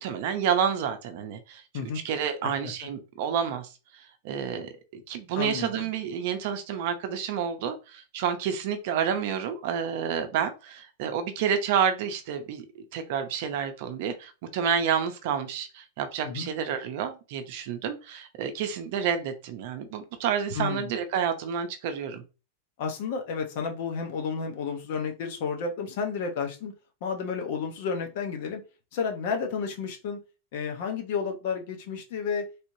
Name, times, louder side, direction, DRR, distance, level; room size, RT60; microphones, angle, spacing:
voice 1, 0.0-1.6 2.0-3.7 4.2-12.7 12.9-22.2, right 8 dB, 55° right, 8 dB, 0.6 m, -29 dB
voice 2, 5.3-5.9 16.2-16.5 20.5-20.9 22.8-26.7 27.0-28.6 28.9-30.2 30.5-32.4, left 5 dB, 55° left, 3 dB, 1.0 m, -31 dB
3.4 x 2.9 x 2.7 m, 0.30 s
supercardioid pair, 155°, 0 cm